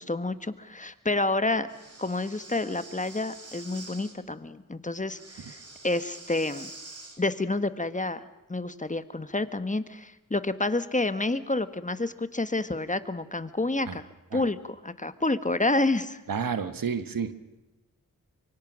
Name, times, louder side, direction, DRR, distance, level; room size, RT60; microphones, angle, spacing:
voice 1, 0.0-1.7 2.0-6.7 7.2-14.0 14.3-16.2, left 2 dB, 25° left, 12 dB, 1.3 m, -29 dB
Breathing, 1.7-4.1 5.1-7.2, right 3 dB, 45° right, 3.7 m, -46 dB
voice 2, 16.3-17.3, right 6 dB, 90° right, 11 dB, 1.2 m, -30 dB
24.5 x 23.5 x 6.2 m, 1.0 s
cardioid pair, 50°, 33 cm